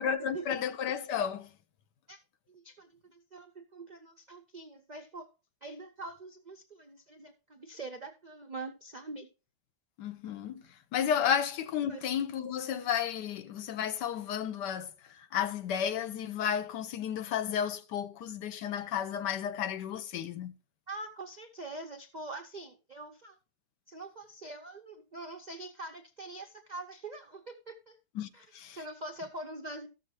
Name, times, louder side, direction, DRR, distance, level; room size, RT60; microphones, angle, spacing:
voice 1, 0.0-1.5 10.0-10.6 10.9-14.9 15.3-20.5 28.1-28.3 28.5-28.8, left 8 dB, 85° left, 1.4 m, -32 dB
voice 2, 2.5-5.3 5.6-9.3 11.9-12.0 20.9-23.4 23.9-28.0 28.3-28.5 28.7-29.9, right 2 dB, 75° right, 0.4 m, -44 dB
13.5 x 6.4 x 3.1 m
omnidirectional pair, 1.8 m